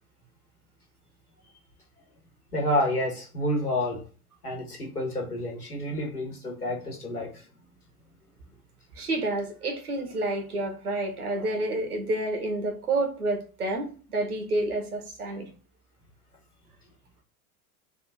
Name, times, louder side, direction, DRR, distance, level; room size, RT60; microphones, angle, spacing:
voice 1, 2.5-4.0 4.4-7.4, left 1 dB, 85° left, 1.3 m, -29 dB
voice 2, 9.0-15.5, right 2 dB, 80° right, 1.1 m, -29 dB
3.4 x 2.5 x 3.9 m
figure-of-eight pair, 80°, 44 cm